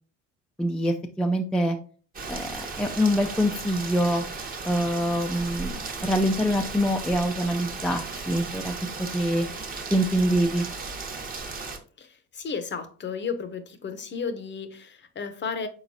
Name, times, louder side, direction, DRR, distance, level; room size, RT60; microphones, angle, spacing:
voice 1, 0.6-1.8 2.3-4.2 4.6-5.7 6.0-8.7 9.1-9.5 9.9-10.7, equal, 5° left, 0.4 m, -25 dB
Rain, 2.1-11.8, right 4 dB, 25° right, 0.9 m, -36 dB
voice 2, 12.0-15.7, left 5 dB, 35° left, 0.7 m, -33 dB
4.7 x 3.8 x 2.7 m
supercardioid pair, 70°, 33 cm